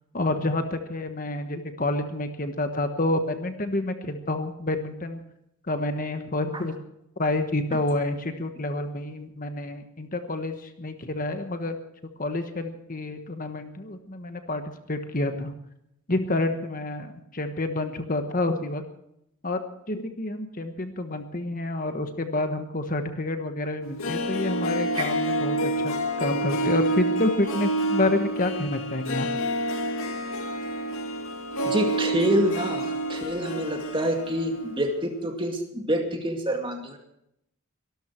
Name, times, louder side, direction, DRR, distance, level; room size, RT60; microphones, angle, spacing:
voice 1, 0.1-5.2 5.7-6.7 7.2-11.7 12.2-15.5 16.1-18.8 19.4-19.6 19.9-29.3, left 2 dB, 40° left, 7 dB, 1.3 m, -28 dB
Harp, 23.8-34.9 35.1-35.2, right 1 dB, 75° left, 2.0 m, -28 dB
voice 2, 31.6-37.0, equal, 25° right, 3 dB, 2.2 m, -27 dB
24.0 x 13.0 x 4.5 m, 0.79 s
head